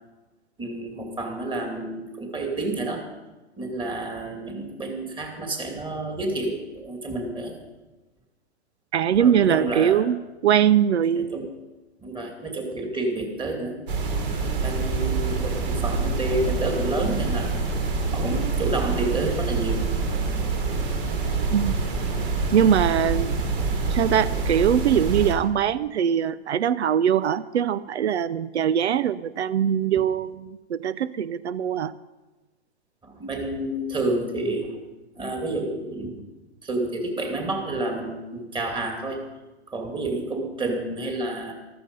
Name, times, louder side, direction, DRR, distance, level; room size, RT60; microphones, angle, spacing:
voice 1, 0.6-3.0 3.6-7.5 9.1-10.0 11.1-11.5 12.0-13.8 14.6-17.6 18.1-19.8 33.0-34.7 35.1-36.3 36.6-39.2 39.7-41.5, right 2 dB, 15° right, 2 dB, 2.5 m, -29 dB
voice 2, 8.9-10.2 10.4-11.4 21.5-21.8 22.5-23.4 23.9-31.9, right 9 dB, 85° right, 18 dB, 0.6 m, -22 dB
sound 1, 13.9-25.3, right 4 dB, 55° right, 3.3 m, -26 dB
14.5 x 13.5 x 5.4 m, 1.1 s
hypercardioid pair, 135°, 33 cm